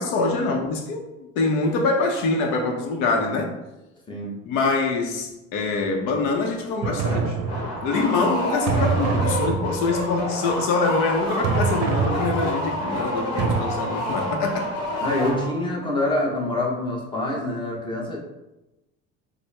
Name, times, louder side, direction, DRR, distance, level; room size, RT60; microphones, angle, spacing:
voice 1, 0.0-3.6 4.4-7.4 7.8-14.7, left 3 dB, 75° left, 0.8 m, -24 dB
sound 1, 6.8-8.0 8.7-10.0 11.4-12.8 13.4-13.6, right 5 dB, 60° right, 0.5 m, -25 dB
sound 2, 7.5-15.8, left 1 dB, 50° left, 1.3 m, -28 dB
voice 2, 15.0-18.2, left 2 dB, 15° left, 0.8 m, -26 dB
4.5 x 2.1 x 3.3 m
cardioid pair, 125°, 29 cm